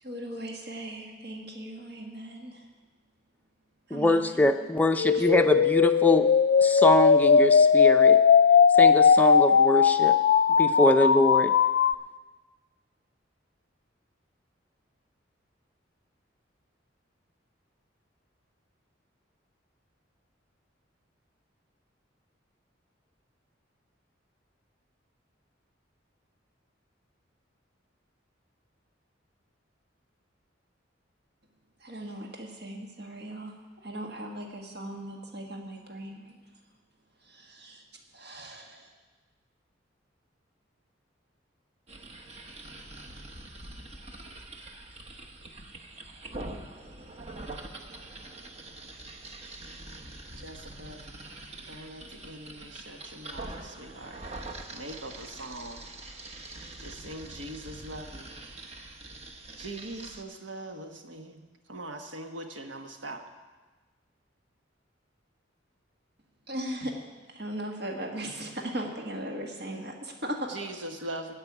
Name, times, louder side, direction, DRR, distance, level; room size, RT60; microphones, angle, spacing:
voice 1, 0.0-2.6 3.9-4.2 5.1-5.2 31.8-33.5 33.8-36.4 37.3-37.8 38.1-38.9 66.5-66.9 67.3-70.5, right 1 dB, 55° right, 1 dB, 1.7 m, -38 dB
voice 2, 3.9-6.3 6.6-8.2 8.8-10.2 10.6-11.5, left 1 dB, 10° left, 5 dB, 0.6 m, -23 dB
sound 1, 5.0-11.9, left 6 dB, 55° left, 0.3 m, -19 dB
sound 2, 41.9-60.2, right 2 dB, 35° right, 1.0 m, -44 dB
voice 3, 50.4-51.1 51.6-54.2 54.7-55.8 56.8-58.3 59.6-63.2 70.5-71.3, right 1 dB, 75° right, 4 dB, 1.4 m, -41 dB
16.5 x 5.5 x 9.7 m, 1.3 s
head